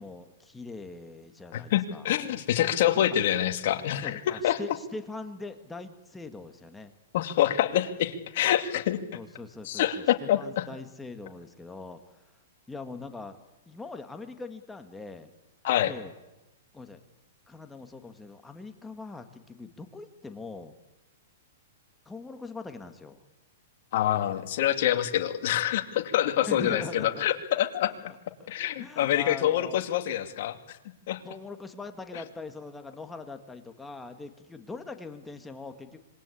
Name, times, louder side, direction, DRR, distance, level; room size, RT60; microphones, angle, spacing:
voice 1, 0.0-2.1 4.0-6.9 9.1-12.2 12.7-13.4 13.7-15.3 15.9-16.1 16.7-17.0 17.5-20.7 22.1-23.2 26.4-27.3 27.9-29.9 31.1-36.0, left 3 dB, 5° left, 7 dB, 1.9 m, -42 dB
voice 2, 1.5-4.6 7.1-9.0 9.6-10.7 15.6-15.9 23.9-27.9 28.5-30.8 31.1-31.2 32.1-32.2, left 11 dB, 55° left, 7 dB, 2.4 m, -26 dB
26.0 x 22.0 x 8.6 m, 0.97 s
hypercardioid pair, 145°, 0 cm